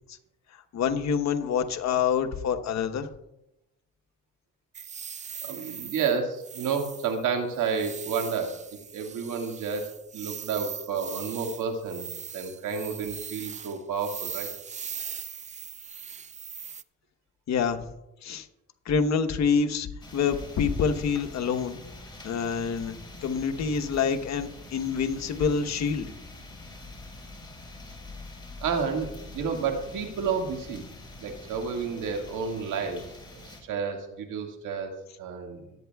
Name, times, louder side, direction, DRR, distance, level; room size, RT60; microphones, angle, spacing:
voice 1, 0.7-3.1 17.5-17.8 18.2-18.5 18.9-19.9 20.1-21.8 22.2-26.1, left 6 dB, 65° left, 7 dB, 1.1 m, -26 dB
sound 1, 4.7-16.8, right 7 dB, 25° right, 0.4 m, -40 dB
voice 2, 5.4-8.6 8.9-12.1 12.3-14.5 28.6-29.1 29.3-30.8 31.2-33.0 33.3-34.9 35.2-35.7, right 6 dB, 85° right, 3 dB, 2.0 m, -30 dB
sound 2, 20.0-33.6, left 2 dB, 15° left, 4.6 m, -45 dB
21.5 x 8.8 x 2.3 m, 0.88 s
cardioid pair, 90°, 30 cm